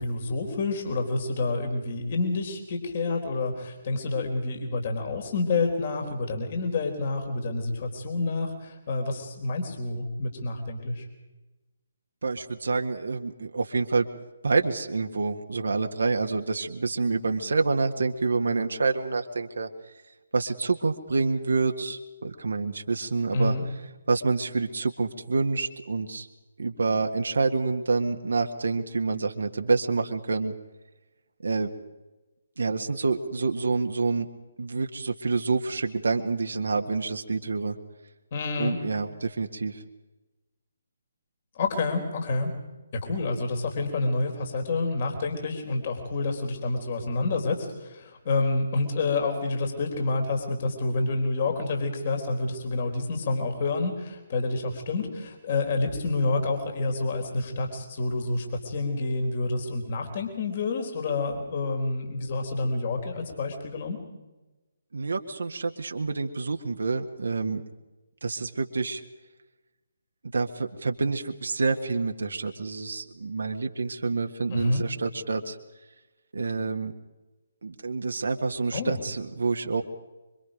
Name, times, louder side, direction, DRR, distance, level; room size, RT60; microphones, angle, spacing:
voice 1, 0.0-11.1 23.3-23.6 38.3-38.8 41.5-42.5 43.0-64.0 74.5-74.8 78.7-79.0, left 3 dB, 40° left, 4 dB, 4.2 m, -28 dB
voice 2, 12.2-14.1 14.4-19.7 20.3-23.6 24.1-26.3 26.6-30.5 31.4-31.7 32.6-34.3 34.6-37.8 38.6-39.8 64.9-67.6 68.2-69.0 70.3-75.6 76.3-76.9 77.6-79.8, right 4 dB, 65° right, 4 dB, 1.8 m, -27 dB
25.5 x 25.0 x 5.2 m, 1.1 s
figure-of-eight pair, 140°, 0 cm